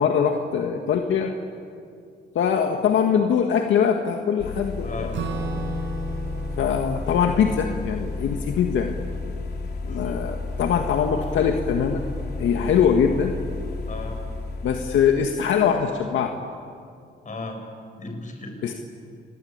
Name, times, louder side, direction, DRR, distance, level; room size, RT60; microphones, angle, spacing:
voice 1, 0.0-1.3 2.4-5.1 6.6-9.0 9.9-12.0 12.4-13.4 14.6-16.3 18.6-18.7, left 7 dB, 75° left, 4 dB, 1.8 m, -22 dB
sound 1, 4.4-15.3, left 3 dB, 55° left, 3.8 m, -32 dB
voice 2, 4.8-5.2 9.9-10.2 13.9-14.2 17.2-17.6 18.0-18.6, left 3 dB, 40° left, 3 dB, 7.4 m, -35 dB
Acoustic guitar / Strum, 5.1-9.9, right 2 dB, 70° right, 5.2 m, -36 dB
29.5 x 22.5 x 8.9 m, 2.4 s
cardioid pair, 90°, 20 cm